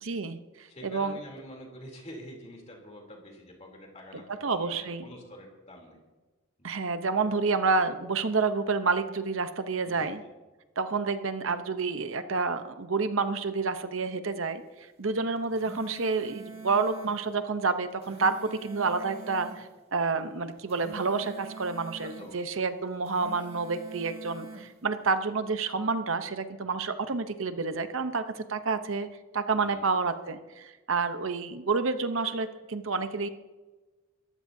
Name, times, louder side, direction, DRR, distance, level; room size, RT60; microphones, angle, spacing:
voice 1, 0.0-1.2 4.4-5.1 6.6-10.2 10.8-29.1 29.3-33.3, right 4 dB, 65° right, 9 dB, 0.8 m, -29 dB
voice 2, 0.7-6.0 6.6-6.8 9.9-10.3 16.1-16.2 22.0-22.6 29.5-29.8, equal, 30° left, 0 dB, 3.2 m, -47 dB
sound 1, 15.4-17.2 17.8-19.6 20.5-22.3 22.9-24.7, right 3 dB, 30° right, 2.1 m, -44 dB
22.0 x 14.5 x 2.8 m, 1.2 s
head